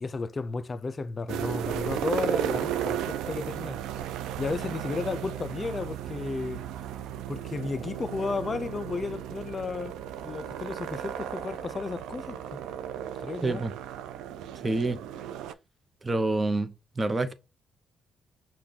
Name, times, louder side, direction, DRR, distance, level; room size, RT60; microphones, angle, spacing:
voice 1, 0.0-3.8 4.4-6.6 7.3-10.0 10.2-12.6 13.2-13.7, left 4 dB, 35° left, 0.4 m, -33 dB
sound 1, 1.3-15.5, right 10 dB, 90° right, 0.4 m, -35 dB
voice 2, 13.4-13.7 14.6-15.0 16.0-17.3, right 2 dB, 25° right, 0.7 m, -27 dB
6.1 x 2.3 x 3.6 m
cardioid pair, 90°, 0 cm